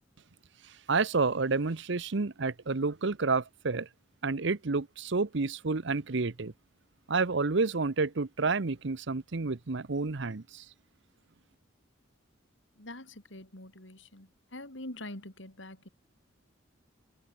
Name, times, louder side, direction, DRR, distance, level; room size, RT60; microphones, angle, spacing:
voice 1, 0.9-3.9 4.2-6.5 7.1-10.6, right 4 dB, 65° right, 0.9 m, -29 dB
voice 2, 12.8-15.9, left 1 dB, 70° left, 5.8 m, -45 dB
head